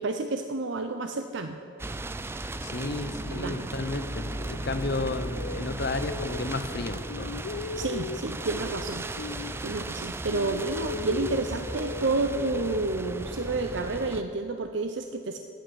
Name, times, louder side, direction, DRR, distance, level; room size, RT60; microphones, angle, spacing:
voice 1, 0.0-1.6 3.3-3.6 7.8-9.0 9.6-15.4, right 3 dB, 60° right, 6 dB, 0.6 m, -30 dB
sound 1, 1.8-14.2, right 2 dB, 10° right, 0.3 m, -36 dB
voice 2, 2.6-7.4, left 2 dB, 50° left, 10 dB, 0.7 m, -32 dB
sound 2, 4.0-6.8 7.1-10.0 10.3-13.8, left 4 dB, 65° left, 0.4 m, -39 dB
9.5 x 8.6 x 9.3 m, 2.7 s
head